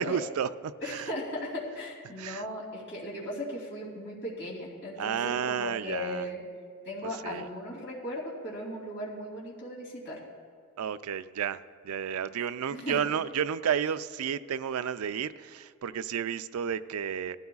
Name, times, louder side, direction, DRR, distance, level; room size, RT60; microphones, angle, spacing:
voice 1, 0.0-1.1 2.2-2.4 5.0-6.3 7.2-7.5 10.8-17.4, right 8 dB, 80° right, 13 dB, 0.4 m, -32 dB
voice 2, 0.8-6.4 6.8-10.2 12.7-13.0, left 1 dB, 55° left, -5 dB, 3.0 m, -37 dB
18.5 x 13.5 x 2.4 m, 2.2 s
head